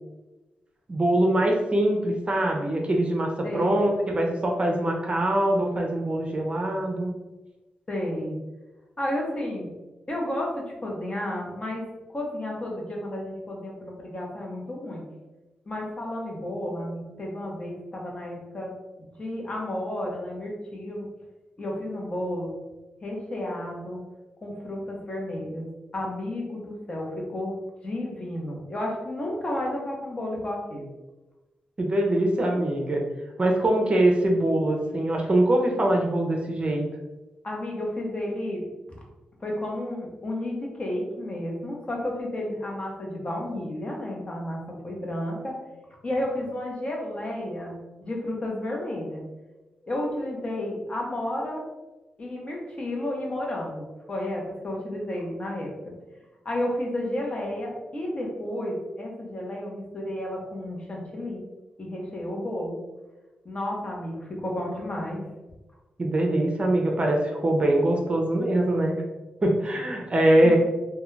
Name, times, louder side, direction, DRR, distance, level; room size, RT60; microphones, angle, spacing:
voice 1, 0.9-7.1 31.8-33.0 33.4-36.8 66.0-68.9 69.4-70.6, right 1 dB, 35° right, 1 dB, 0.5 m, -23 dB
voice 2, 3.4-3.7 7.9-8.3 9.0-9.7 10.1-11.8 12.1-15.0 15.7-18.7 19.2-21.1 21.6-22.5 23.0-24.0 24.4-27.6 27.8-30.9 37.4-38.6 39.4-45.6 46.0-49.2 49.8-51.6 52.2-55.7 56.4-61.4 61.8-62.8 63.4-65.2 70.4-70.6, left 1 dB, 35° left, -1 dB, 0.8 m, -32 dB
2.3 x 2.2 x 3.1 m, 1.1 s
cardioid pair, 65°, 3 cm